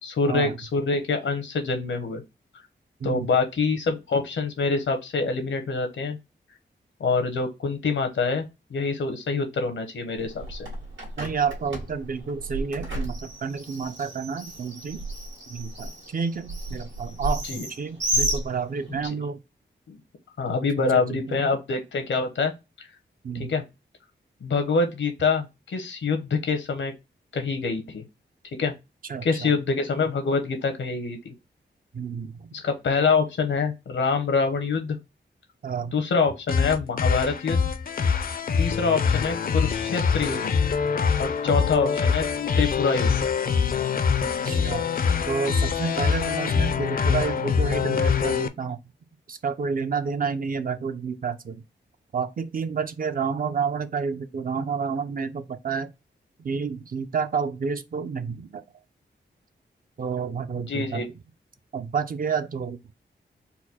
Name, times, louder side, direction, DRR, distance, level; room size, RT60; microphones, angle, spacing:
voice 1, 0.0-2.2 3.0-6.2 7.0-10.7 17.5-17.7 19.0-19.1 19.9-20.0 20.4-22.5 23.5-23.6 24.4-26.9 27.3-28.0 28.6-28.7 29.2-31.3 32.5-35.0 35.9-37.7 38.6-40.5 41.2-42.2 42.5-43.3 60.7-61.1, left 4 dB, 90° left, 1.0 m, -25 dB
voice 2, 3.0-3.3 11.2-15.0 15.5-19.4 20.4-21.5 23.2-23.5 29.1-29.5 31.9-32.5 35.6-35.9 44.5-48.8 49.3-51.6 52.1-55.9 56.4-58.6 60.0-61.1 61.7-62.9, right 5 dB, 50° right, 0.5 m, -30 dB
Bird, 10.2-19.1, right 1 dB, 85° right, 1.8 m, -32 dB
sound 1, 36.5-48.5, left 6 dB, 50° left, 0.4 m, -24 dB
4.1 x 2.3 x 4.2 m
wide cardioid pair, 90°, 19 cm